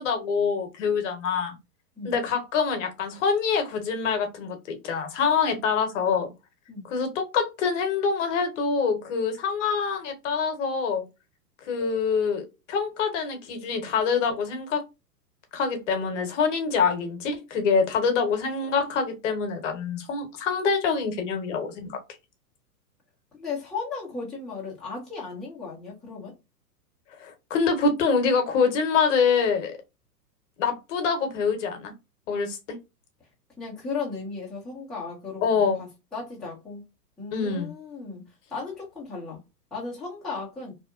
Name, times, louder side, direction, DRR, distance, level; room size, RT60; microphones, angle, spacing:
voice 1, 0.0-1.5 2.0-6.3 6.9-11.0 11.7-14.8 15.5-22.0 27.2-29.8 30.6-31.9 32.3-32.8 35.4-35.8 37.3-37.7, left 5 dB, 50° left, 0.9 m, -25 dB
voice 2, 23.3-26.3 33.6-35.5 35.8-36.8 37.2-38.2 38.5-39.4 39.7-40.7, left 4 dB, ahead, 0.6 m, -35 dB
2.7 x 2.1 x 2.4 m
hypercardioid pair, 110°, 48 cm